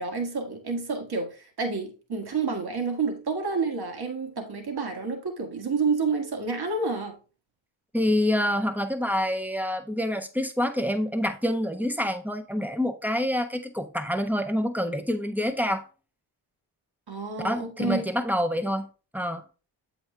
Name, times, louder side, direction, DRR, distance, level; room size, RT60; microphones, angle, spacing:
voice 1, 0.0-7.2 17.1-18.1, right 4 dB, 50° right, 2.0 m, -29 dB
voice 2, 7.9-15.8 17.4-18.9 19.1-19.4, left 1 dB, 5° right, 1.0 m, -27 dB
7.7 x 4.8 x 3.4 m
supercardioid pair, 40°, 49 cm